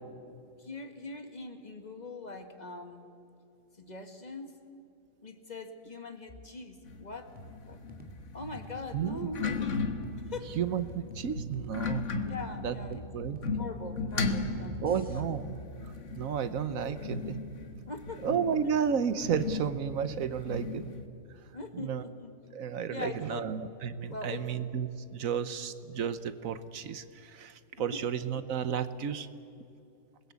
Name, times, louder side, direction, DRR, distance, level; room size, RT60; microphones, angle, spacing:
voice 1, 0.6-3.1 3.8-4.6 5.2-7.3 7.7-7.8 8.3-9.7 10.1-10.6 12.2-13.0 13.5-15.3 16.7-17.0 17.9-18.3 21.5-22.3 22.9-23.5 24.1-24.6 27.8-27.9, left 3 dB, 30° left, 6 dB, 1.8 m, -42 dB
sound 1, 6.8-21.1, left 3 dB, 60° left, 1.7 m, -37 dB
sound 2, 7.4-15.2, equal, 5° right, 2.4 m, -52 dB
voice 2, 10.6-12.1 12.6-13.6 14.8-15.6 16.1-17.4 18.2-20.8 21.7-22.1 22.5-29.3, right 7 dB, 80° right, 12 dB, 1.3 m, -32 dB
27.5 x 21.0 x 8.3 m, 2.6 s
omnidirectional pair, 1.4 m